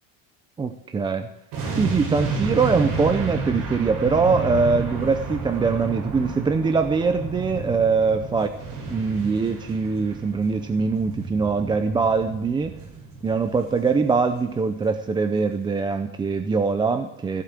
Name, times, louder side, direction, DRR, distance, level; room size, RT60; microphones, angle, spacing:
voice 1, 0.6-1.3 1.8-8.5 8.9-12.7 13.2-17.4, right 4 dB, 15° right, 9 dB, 0.5 m, -22 dB
sound 1, 1.5-14.7 14.9-15.1, right 4 dB, 85° right, 6.4 m, -31 dB
16.0 x 8.1 x 8.8 m, 0.90 s
cardioid pair, 175°, 35 cm